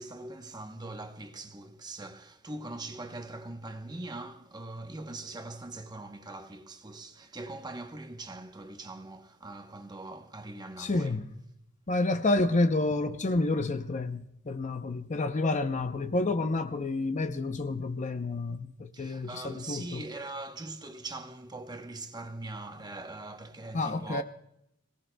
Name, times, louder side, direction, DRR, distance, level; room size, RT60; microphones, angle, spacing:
voice 1, 0.0-11.2 18.9-24.2, right 2 dB, 20° right, 0.9 m, -42 dB
voice 2, 10.8-11.3 11.9-20.0 23.7-24.2, left 2 dB, 35° left, 0.6 m, -29 dB
26.5 x 18.0 x 2.2 m
head